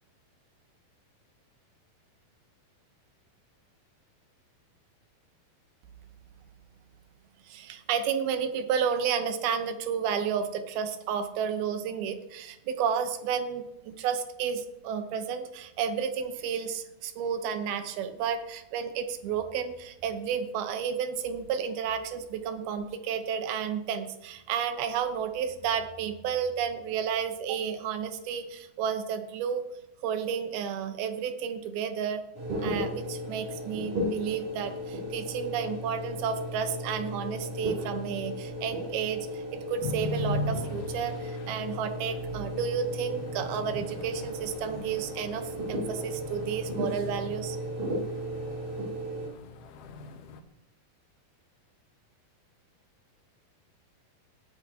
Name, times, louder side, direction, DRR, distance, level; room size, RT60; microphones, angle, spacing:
voice 1, 7.5-29.6 30.0-32.2 32.6-47.6, right 7 dB, 85° right, 8 dB, 2.9 m, -31 dB
sound 1, 32.4-49.3, equal, 65° right, 4.6 m, -35 dB
sound 2, 39.8-50.4, left 2 dB, 70° left, 2.2 m, -39 dB
17.5 x 9.5 x 2.8 m, 0.90 s
omnidirectional pair, 4.3 m